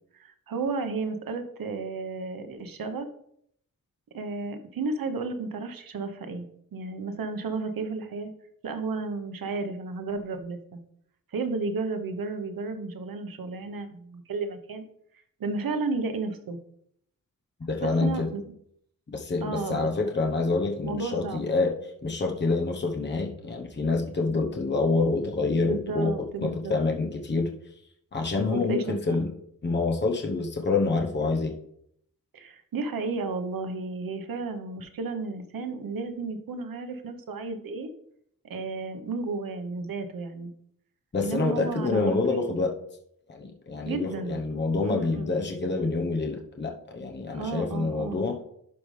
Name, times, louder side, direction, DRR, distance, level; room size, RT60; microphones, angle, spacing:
voice 1, 0.1-3.1 4.1-6.5 6.7-8.3 8.6-10.8 11.3-14.9 15.4-16.6 17.8-18.5 19.4-19.9 20.8-21.4 25.6-26.7 28.5-29.3 32.3-37.9 38.4-40.5 41.2-42.4 43.9-44.4 44.8-45.3 47.3-48.2, right 3 dB, 80° right, 8 dB, 1.0 m, -33 dB
voice 2, 17.7-18.3 19.1-21.7 22.0-26.1 26.4-27.5 28.1-29.3 29.6-31.5 41.1-42.7 43.3-48.4, left 3 dB, 30° left, 2 dB, 1.0 m, -27 dB
11.5 x 5.3 x 3.3 m, 0.70 s
wide cardioid pair, 140°, 34 cm